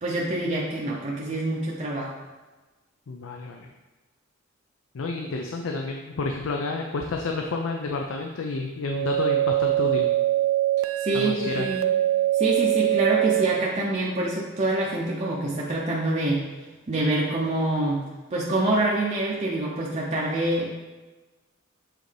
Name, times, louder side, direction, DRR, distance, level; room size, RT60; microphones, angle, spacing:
voice 1, 0.0-2.1 11.0-11.8 12.3-16.4 16.9-20.7, right 2 dB, 35° right, -4 dB, 0.6 m, -26 dB
voice 2, 3.1-3.7 4.9-10.1 11.1-11.7, left 3 dB, 80° left, 2 dB, 0.5 m, -30 dB
sound 1, 8.9-13.8, right 13 dB, 75° right, 0.4 m, -23 dB
7.5 x 3.8 x 3.3 m, 1.2 s
head